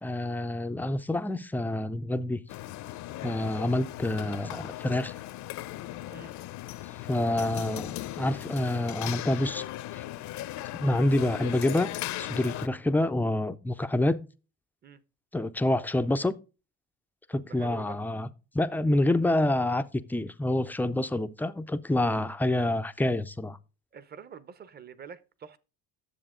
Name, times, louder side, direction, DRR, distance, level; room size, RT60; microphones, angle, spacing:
voice 1, 0.0-2.4 3.2-5.1 7.1-9.6 9.9-10.0 10.8-11.9 12.2-14.3 15.3-16.3 17.3-18.3 18.5-19.8 20.1-23.6, left 1 dB, 5° left, 0.3 m, -27 dB
sound 1, 2.5-12.7, left 15 dB, 55° left, 0.6 m, -38 dB
voice 2, 17.3-18.0 23.9-25.6, right 6 dB, 25° right, 0.7 m, -46 dB
10.0 x 7.0 x 3.7 m
cardioid pair, 120°, 35 cm